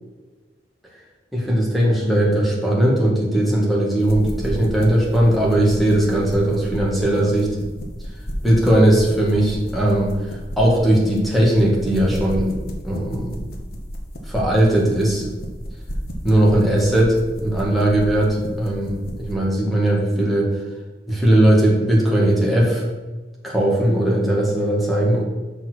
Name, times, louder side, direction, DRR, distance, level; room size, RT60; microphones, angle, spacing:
voice 1, 1.3-7.5 8.4-10.1 10.6-12.5 12.8-13.5 14.3-15.2 16.2-20.5 21.1-22.9 23.4-25.2, right 1 dB, ahead, -4 dB, 1.9 m, -18 dB
sound 1, 4.0-19.4, equal, 55° left, 1.1 m, -33 dB
6.7 x 5.6 x 6.3 m, 1.2 s
head